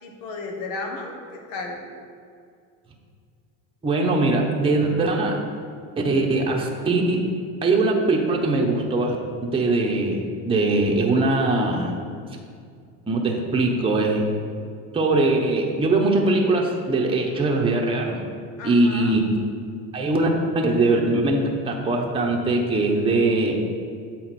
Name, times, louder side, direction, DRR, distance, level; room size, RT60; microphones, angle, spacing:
voice 1, 0.0-1.9 18.6-19.2, left 3 dB, 80° left, 1 dB, 1.3 m, -34 dB
voice 2, 3.8-5.4 6.0-7.2 7.6-9.2 9.4-12.1 13.1-14.2 14.9-18.2 18.6-19.3 19.9-20.3 20.5-23.6, right 2 dB, 15° right, -1 dB, 0.8 m, -21 dB
7.8 x 4.2 x 4.2 m, 2.2 s
supercardioid pair, 95°, 39 cm